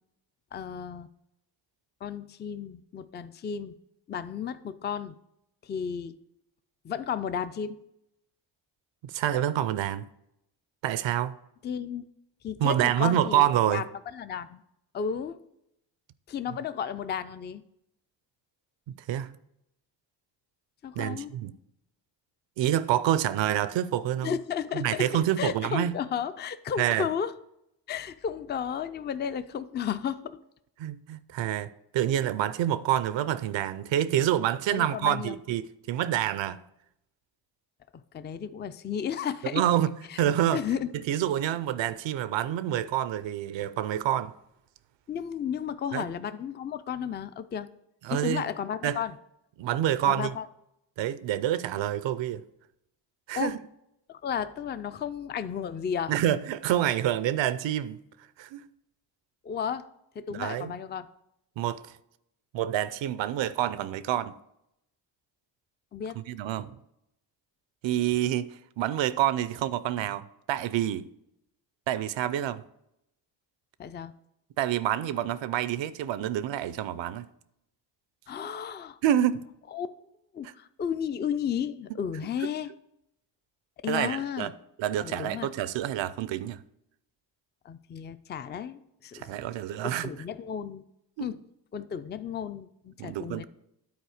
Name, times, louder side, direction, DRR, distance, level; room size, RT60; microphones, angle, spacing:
voice 1, 0.5-1.1 2.0-3.8 4.1-5.2 5.6-6.1 6.8-7.8 11.6-12.0 12.4-13.8 14.1-14.6 14.9-15.4 16.3-17.6 20.8-21.3 24.2-25.1 25.4-27.3 27.9-30.4 34.7-35.4 38.1-39.6 40.1-40.2 40.5-40.9 45.1-47.7 48.1-49.1 50.0-50.5 53.4-53.5 54.1-56.1 59.4-59.8 60.2-61.1 65.9-66.2 73.8-74.1 78.3-79.0 79.7-79.9 80.3-82.7 83.8-84.5 85.0-85.5 87.6-89.3 89.8-90.8 91.2-91.4 91.7-93.5, left 8 dB, 25° left, 0.3 m, -33 dB
voice 2, 9.0-10.0 10.8-11.3 12.6-13.8 19.1-19.3 21.0-21.5 22.6-24.3 24.7-25.9 26.8-27.1 30.8-36.6 39.5-40.6 40.9-44.3 45.9-46.1 48.0-48.4 48.8-49.0 49.6-50.3 51.0-52.4 53.3-53.6 56.1-58.0 58.4-58.6 60.3-60.7 61.6-61.8 62.5-64.3 66.3-66.8 67.8-71.1 71.9-72.6 74.6-77.3 79.0-79.4 83.9-84.5 84.8-86.6 89.1-90.1 91.2-91.3 93.0-93.5, right 11 dB, 80° right, 0.5 m, -27 dB
9.5 x 4.2 x 4.9 m
cardioid pair, 70°, 44 cm